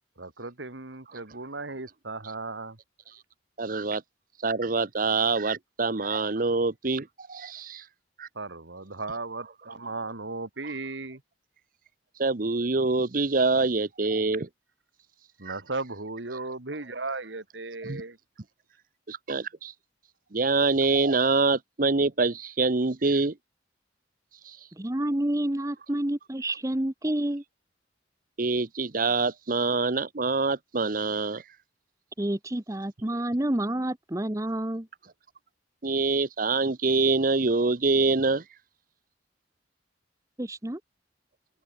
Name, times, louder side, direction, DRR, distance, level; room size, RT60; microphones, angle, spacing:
voice 1, 0.2-2.8 8.3-11.2 15.4-18.2, right 3 dB, 75° right, 2.2 m, -36 dB
voice 2, 3.6-4.0 4.4-7.9 8.2-8.3 12.1-14.5 15.4-15.6 17.9-18.0 19.1-19.7 20.3-23.3 24.4-24.7 28.4-31.6 35.8-38.5, right 3 dB, 45° right, 0.9 m, -25 dB
voice 3, 24.8-27.4 32.2-34.9 40.4-40.8, right 1 dB, 15° right, 0.9 m, -29 dB
head